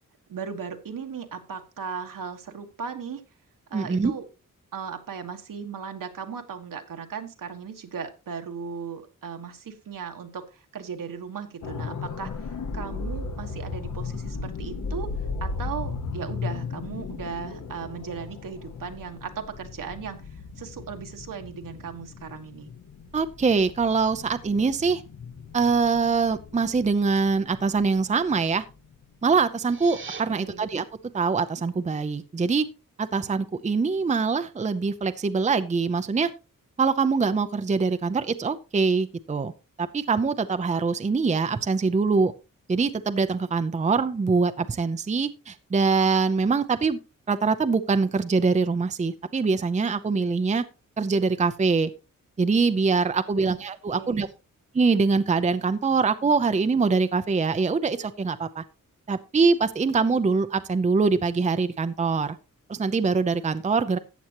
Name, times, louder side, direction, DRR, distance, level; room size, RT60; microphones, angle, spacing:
voice 1, 0.3-3.2 3.7-4.2 4.7-15.1 15.4-20.2 20.6-22.7 30.3-30.7 53.3-54.3, right 6 dB, 75° right, 5 dB, 1.6 m, -37 dB
voice 2, 3.7-4.1 23.1-25.0 25.5-28.6 29.2-30.8 31.1-32.7 33.0-36.3 36.8-39.5 39.8-42.3 42.7-47.0 47.3-50.6 51.0-51.9 52.4-54.3 54.7-58.6 59.1-62.4 62.7-64.0, right 4 dB, 20° right, 11 dB, 0.6 m, -23 dB
sound 1, 11.6-29.5 29.9-30.0, left 4 dB, 65° left, 1.3 m, -36 dB
sound 2, 29.4-30.2, right 5 dB, 35° right, 1.2 m, -40 dB
14.0 x 8.5 x 3.0 m, 0.30 s
wide cardioid pair, 115°, 33 cm